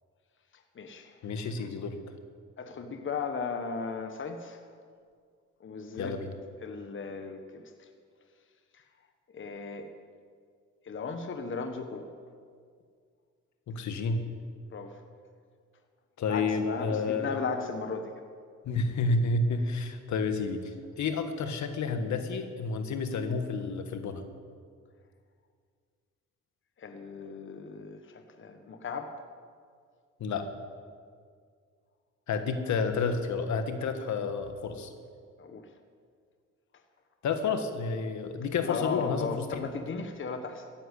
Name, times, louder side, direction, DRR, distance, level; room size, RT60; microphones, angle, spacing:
voice 1, 0.5-1.3 2.6-4.7 5.6-6.2 6.6-7.9 8.7-8.8 9.3-9.9 10.8-12.0 14.7-15.0 16.3-18.2 26.8-29.1 35.4-35.7 38.6-40.7, left 4 dB, 40° left, 7 dB, 1.3 m, -36 dB
voice 2, 1.2-2.0 6.0-6.3 13.7-14.2 16.2-17.4 18.7-24.2 30.2-30.5 32.3-34.9 37.2-39.7, left 4 dB, 70° left, 8 dB, 1.6 m, -30 dB
14.5 x 10.5 x 8.4 m, 2.1 s
cardioid pair, 90°, 30 cm